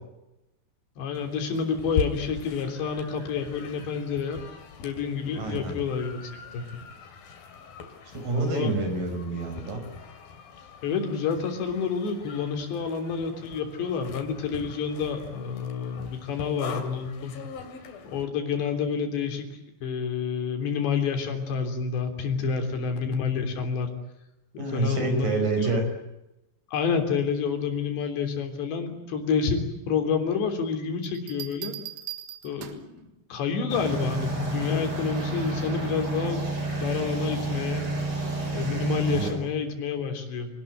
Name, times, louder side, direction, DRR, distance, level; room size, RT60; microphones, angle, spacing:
voice 1, 1.0-4.4 4.8-6.2 6.5-6.6 8.3-8.8 10.8-17.3 18.0-19.5 19.8-23.9 24.5-25.3 25.6-25.8 26.7-31.8 32.4-36.4 36.8-37.9 38.5-40.5, left 6 dB, 85° left, 5 dB, 5.6 m, -29 dB
sound 1, 1.1-18.2, left 5 dB, 60° left, 4.2 m, -41 dB
voice 2, 5.3-5.7 8.1-9.8 24.6-25.8 39.1-39.4, right 3 dB, 50° right, 5 dB, 6.9 m, -27 dB
sound 2, 31.0-33.0 34.6-34.9, right 13 dB, 85° right, 3.8 m, -40 dB
sound 3, 33.7-39.3, right 2 dB, 30° right, 5.4 m, -30 dB
28.0 x 19.5 x 9.2 m, 0.94 s
omnidirectional pair, 4.9 m